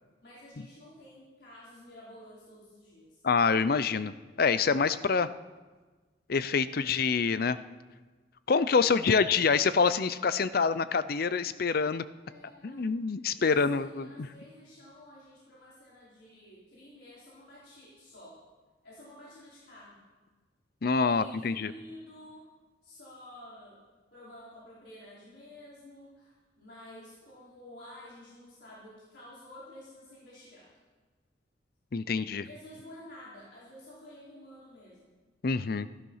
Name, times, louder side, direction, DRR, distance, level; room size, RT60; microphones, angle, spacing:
voice 1, 0.2-3.2 8.8-9.3 12.2-12.8 13.3-18.4 18.8-20.0 21.0-22.5 22.8-23.8 24.1-30.7 32.4-35.1, left 1 dB, 75° left, -9 dB, 4.7 m, -51 dB
voice 2, 3.2-5.3 6.3-7.6 8.5-12.0 12.6-14.3 20.8-21.7 31.9-32.5 35.4-35.9, left 5 dB, 55° left, 14 dB, 0.5 m, -26 dB
14.5 x 12.5 x 5.6 m, 1.3 s
head